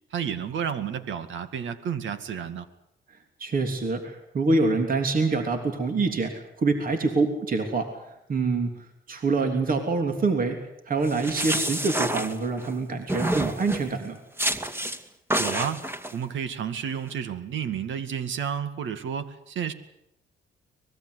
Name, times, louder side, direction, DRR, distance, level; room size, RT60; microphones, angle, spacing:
voice 1, 0.1-2.7 15.4-15.8 16.1-19.7, right 8 dB, 75° right, 11 dB, 2.1 m, -31 dB
voice 2, 3.4-7.9 8.3-8.7 9.1-10.6 10.9-14.2, right 3 dB, 45° right, 5 dB, 3.3 m, -25 dB
sound 1, 11.0-12.7 13.1-13.9 14.4-15.0 15.3-16.1, right 1 dB, 10° right, 2.2 m, -28 dB
24.5 x 20.5 x 8.2 m, 0.81 s
cardioid pair, 90°, 20 cm